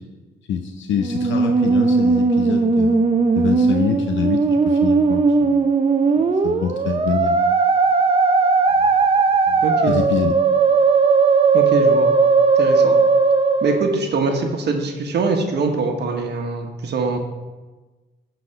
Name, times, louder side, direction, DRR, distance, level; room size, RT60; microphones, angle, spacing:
voice 1, 0.5-5.7 6.4-7.5 8.8-8.9 9.5-10.4, left 7 dB, 70° left, 4 dB, 0.6 m, -26 dB
Musical instrument, 1.0-14.0, right 4 dB, 30° right, 0.7 m, -17 dB
voice 2, 9.6-10.0 11.5-12.1 12.6-12.9 13.6-17.2, right 3 dB, 60° right, 3 dB, 1.2 m, -23 dB
11.0 x 4.1 x 5.6 m, 1.2 s
cardioid pair, 90°, 20 cm